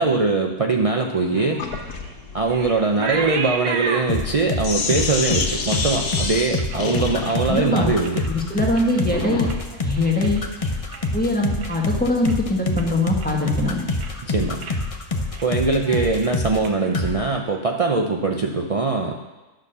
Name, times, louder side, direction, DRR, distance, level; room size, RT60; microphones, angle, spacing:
voice 1, 0.0-1.6 2.3-8.2 14.3-14.6 15.4-19.1, right 3 dB, 55° right, 1 dB, 0.3 m, -22 dB
sound 1, 0.9-7.6 7.9-8.4 8.7-11.2 11.5-11.9 12.2-12.4 12.8-13.6 13.9-14.3 14.6-14.8 15.1-15.5 15.8-17.6, right 5 dB, 85° right, 1.5 m, -34 dB
Sink (filling or washing), 1.6-9.6, left 4 dB, 70° left, 1.5 m, -29 dB
sound 2, 4.1-16.7 16.9-17.1, left 3 dB, 30° left, 0.7 m, -26 dB
voice 2, 7.5-7.9 8.3-9.5 9.8-10.4 11.1-13.8, left 1 dB, 5° left, -2 dB, 1.5 m, -22 dB
11.0 x 6.4 x 6.8 m, 1.1 s
omnidirectional pair, 1.6 m